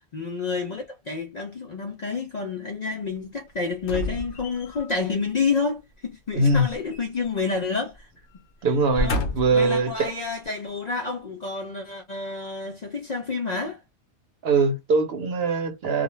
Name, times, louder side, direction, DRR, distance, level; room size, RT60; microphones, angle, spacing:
voice 1, 0.0-8.1 9.0-9.2 9.5-13.8, left 4 dB, 55° left, 0.5 m, -29 dB
sound 1, 3.8-5.0 6.5-7.7 8.0-8.2 8.7-9.7 10.4-10.5, left 1 dB, 85° left, 1.0 m, -31 dB
voice 2, 6.3-6.7 8.6-10.1 14.4-16.0, right 3 dB, 65° right, 0.9 m, -22 dB
2.3 x 2.2 x 3.0 m
omnidirectional pair, 1.2 m